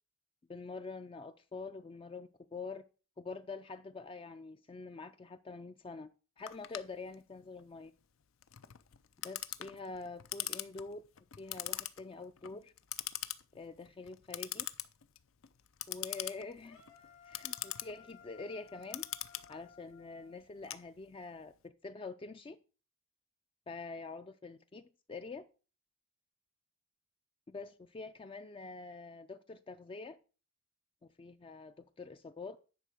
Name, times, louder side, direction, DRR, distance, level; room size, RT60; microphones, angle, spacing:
voice 1, 0.5-2.8 3.2-6.1 6.4-7.9 9.2-11.0 11.4-12.7 13.5-14.7 15.9-16.9 17.2-19.0 19.5-22.6 23.7-25.4 27.5-30.2 31.0-32.6, left 3 dB, 25° left, 0.3 m, -46 dB
Clock, 6.5-21.4, left 13 dB, 85° left, 0.6 m, -43 dB
sound 1, 16.6-20.7, left 7 dB, 70° left, 2.2 m, -59 dB
10.0 x 4.2 x 6.3 m
head